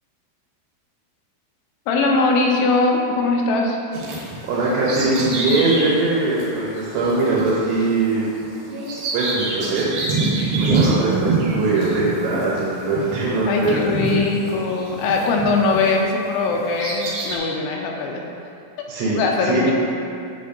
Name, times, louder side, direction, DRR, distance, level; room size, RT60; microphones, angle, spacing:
voice 1, 1.9-3.8 13.5-18.2 19.0-19.7, left 3 dB, 90° left, 0 dB, 2.8 m, -21 dB
Bird vocalization bird call bird song, 3.9-16.0 16.5-17.4, right 3 dB, 65° right, 2.6 m, -26 dB
voice 2, 4.5-8.3 9.1-9.9 10.6-13.9 18.9-19.7, right 2 dB, 85° right, -6 dB, 3.0 m, -21 dB
8.0 x 5.1 x 2.7 m, 2.5 s
omnidirectional pair, 4.8 m